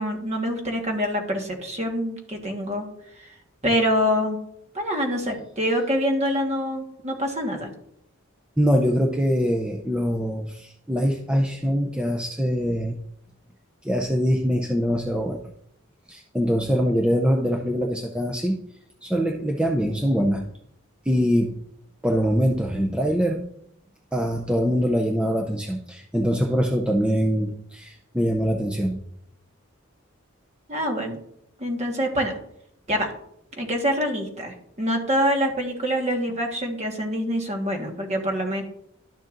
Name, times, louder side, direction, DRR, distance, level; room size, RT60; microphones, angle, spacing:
voice 1, 0.0-2.9 3.2-3.3 3.6-4.4 4.7-7.7 30.7-31.2 31.6-32.3 32.9-33.1 33.6-38.6, equal, 35° right, 2 dB, 1.4 m, -25 dB
voice 2, 8.6-13.0 13.8-15.5 16.1-18.6 19.0-20.4 21.1-21.6 22.0-23.4 24.1-29.0, equal, 5° right, 1 dB, 0.5 m, -23 dB
12.0 x 6.4 x 2.6 m, 0.73 s
head